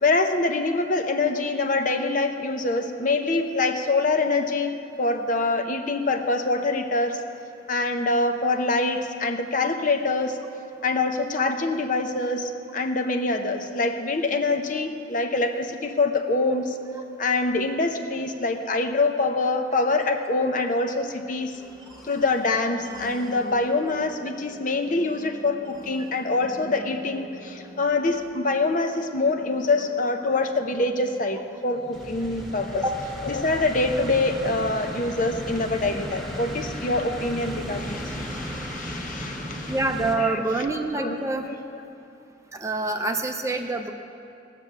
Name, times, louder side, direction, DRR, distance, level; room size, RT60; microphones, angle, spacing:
voice 1, 0.0-7.2 7.7-10.4 10.8-16.8 17.2-21.6 22.0-32.9 33.2-39.7 40.2-40.5 41.0-41.5, left 3 dB, 45° left, 6 dB, 0.7 m, -25 dB
sound 1, 21.5-40.2, equal, ahead, 1.6 m, -38 dB
voice 2, 39.7-41.5 42.5-43.9, right 2 dB, 15° right, 5 dB, 0.6 m, -26 dB
18.0 x 6.7 x 7.4 m, 2.6 s
head